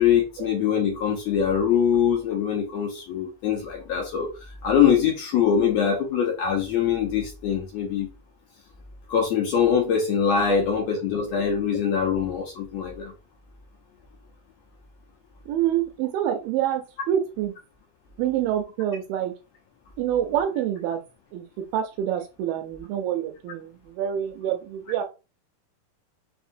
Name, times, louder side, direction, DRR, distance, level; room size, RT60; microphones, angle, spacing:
voice 1, 0.0-4.3 4.6-8.1 9.1-13.1, left 8 dB, 75° left, 0 dB, 1.5 m, -23 dB
voice 2, 15.5-17.5 18.2-19.3 20.0-21.0 21.3-25.0, right 10 dB, 90° right, 3 dB, 2.3 m, -27 dB
5.6 x 2.7 x 2.5 m, 0.29 s
omnidirectional pair, 3.9 m